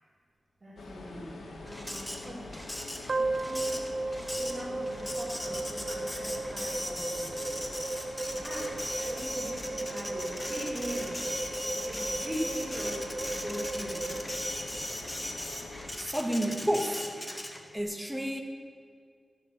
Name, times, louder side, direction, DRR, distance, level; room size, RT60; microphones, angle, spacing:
voice 1, 0.6-1.3 1.6-2.7 3.2-3.8 4.1-7.3 7.9-8.0 8.4-11.3 11.8-14.1, equal, 35° right, 5.0 m, -41 dB
sound 1, 0.8-15.9, left 2 dB, 85° left, 3.0 m, -45 dB
Printer, 1.7-17.8, left 1 dB, 15° left, 2.0 m, -39 dB
sound 2, 3.1-15.3, right 2 dB, 50° right, 1.1 m, -36 dB
voice 2, 16.0-17.1 17.7-18.4, equal, 5° right, 2.1 m, -30 dB
15.0 x 12.0 x 7.8 m
wide cardioid pair, 80°, 0 cm